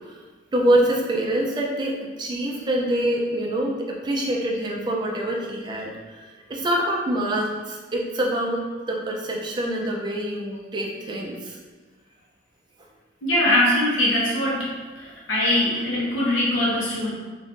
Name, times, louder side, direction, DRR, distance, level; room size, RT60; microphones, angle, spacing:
voice 1, 0.5-11.6 15.7-15.9, right 1 dB, 25° right, -1 dB, 0.4 m, -25 dB
voice 2, 13.2-14.7 15.0-17.1, left 1 dB, 80° left, -6 dB, 0.9 m, -22 dB
2.5 x 2.5 x 3.5 m, 1.4 s
head